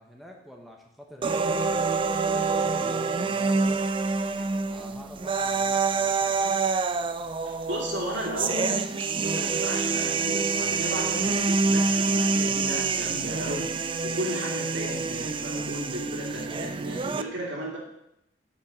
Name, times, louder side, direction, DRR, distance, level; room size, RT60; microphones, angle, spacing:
voice 1, 0.0-3.9 4.6-6.6, equal, ahead, 0 dB, 1.0 m, -46 dB
sound 1, 1.2-17.2, right 4 dB, 30° right, 0.4 m, -27 dB
voice 2, 7.4-13.8 14.0-17.8, equal, 75° right, -3 dB, 2.8 m, -34 dB
8.4 x 5.4 x 7.2 m, 0.81 s
head